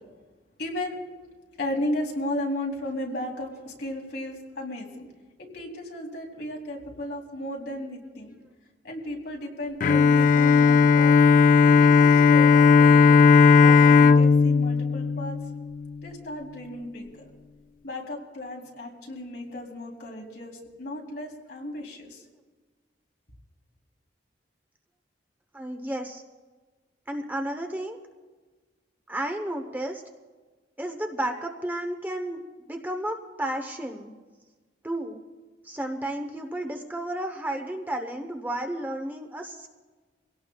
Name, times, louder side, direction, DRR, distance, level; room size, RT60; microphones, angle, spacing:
voice 1, 0.6-1.0 1.6-5.0 5.4-8.3 8.8-11.1 11.6-13.2 13.6-15.4 16.0-17.3 17.8-22.2, left 1 dB, 60° left, -1 dB, 3.2 m, -34 dB
Bowed string instrument, 9.8-16.0, left 5 dB, 45° left, 0.3 m, -17 dB
voice 2, 25.5-26.2 27.1-28.0 29.1-30.0 30.8-32.4 32.7-34.1 34.8-35.2 35.6-39.7, right 1 dB, 10° right, 4 dB, 0.9 m, -32 dB
24.5 x 17.5 x 2.3 m, 1.3 s
head